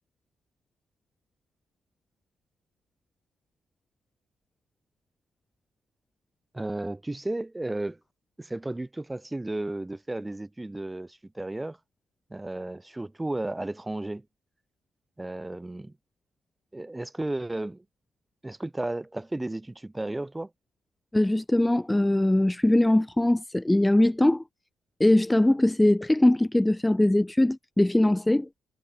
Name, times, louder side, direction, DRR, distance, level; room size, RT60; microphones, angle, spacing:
voice 1, 6.5-8.0 8.4-11.8 12.3-14.2 15.2-15.9 16.7-17.8 18.4-20.5, right 2 dB, 15° right, 2.6 m, -33 dB
voice 2, 21.1-24.4 25.0-28.5, left 1 dB, 10° left, 1.4 m, -21 dB
cardioid pair, 90°, 0 cm